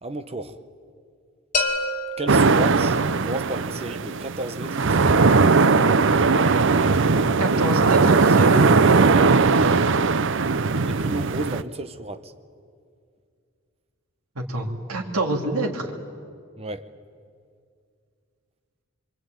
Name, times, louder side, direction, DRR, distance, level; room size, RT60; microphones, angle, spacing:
voice 1, 0.0-0.6 2.2-5.2 8.9-9.2 10.8-12.3 16.6-16.9, right 2 dB, 25° right, 9 dB, 1.1 m, -33 dB
sound 1, 1.5-3.4, left 2 dB, 35° left, 2.3 m, -28 dB
sound 2, 2.3-11.6, right 4 dB, 55° right, 0.7 m, -19 dB
voice 2, 7.4-8.6 14.4-15.9, right 2 dB, 80° right, 0 dB, 3.0 m, -26 dB
25.0 x 24.5 x 9.3 m, 2.3 s
head